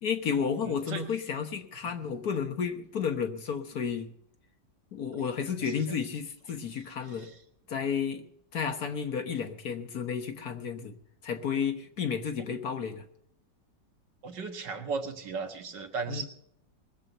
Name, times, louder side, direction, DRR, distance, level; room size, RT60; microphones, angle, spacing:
voice 1, 0.0-4.1 4.9-7.3 7.7-8.2 8.5-10.9 11.2-13.0 16.1-16.3, left 6 dB, 60° left, 6 dB, 1.6 m, -32 dB
voice 2, 0.6-1.0 5.6-5.7 7.1-7.4 14.2-16.3, right 5 dB, 70° right, 5 dB, 2.1 m, -36 dB
20.0 x 7.6 x 6.7 m, 0.70 s
omnidirectional pair, 1.9 m